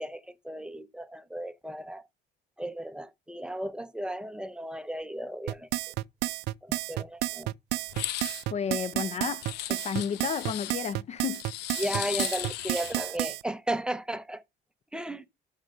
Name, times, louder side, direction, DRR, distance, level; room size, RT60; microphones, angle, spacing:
voice 1, 0.0-2.1 2.6-5.9 6.6-7.5 11.8-14.4 14.9-15.3, right 1 dB, 5° right, 0.6 m, -35 dB
sound 1, 5.5-13.4, right 19 dB, 80° right, 0.4 m, -31 dB
sound 2, 7.9-8.4 9.4-10.7 11.3-13.1, left 13 dB, 85° left, 0.8 m, -36 dB
voice 2, 8.5-11.4, left 7 dB, 40° left, 0.5 m, -32 dB
6.5 x 6.3 x 5.1 m
cardioid pair, 110°, 17 cm